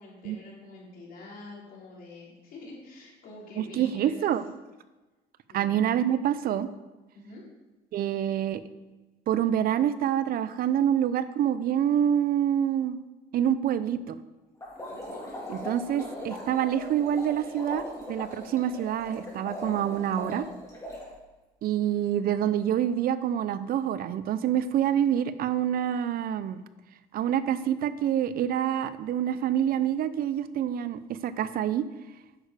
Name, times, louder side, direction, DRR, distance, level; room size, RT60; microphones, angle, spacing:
voice 1, 0.0-4.3 5.5-5.8 7.1-7.5, left 2 dB, 60° left, -3 dB, 3.5 m, -46 dB
voice 2, 3.6-4.4 5.5-6.7 7.9-8.6 9.3-13.0 13.3-14.2 15.5-20.5 21.6-26.6 27.1-31.9, right 10 dB, 60° right, 14 dB, 0.6 m, -26 dB
sound 1, 14.6-21.1, left 1 dB, 20° left, 3.4 m, -39 dB
9.7 x 6.5 x 5.0 m, 1.2 s
cardioid pair, 110°, 17 cm